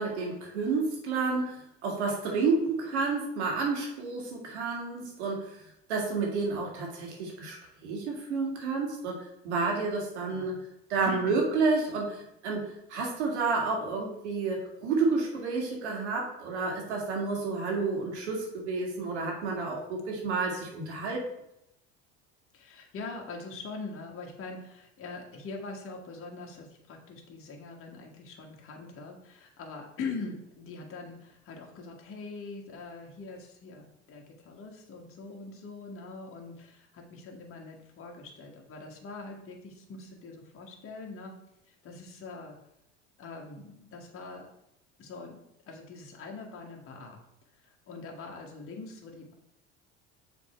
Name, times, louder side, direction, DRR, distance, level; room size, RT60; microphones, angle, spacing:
voice 1, 0.0-5.6 5.9-7.6 7.8-10.6 10.9-21.2, right 4 dB, 85° right, -1 dB, 1.8 m, -30 dB
voice 2, 11.0-11.4 22.5-41.3 41.7-42.6 43.2-44.5 45.0-45.4 45.7-47.2 47.5-49.3, left 3 dB, 40° left, 0 dB, 1.5 m, -43 dB
6.9 x 3.5 x 4.4 m, 0.80 s
hypercardioid pair, 80°, 33 cm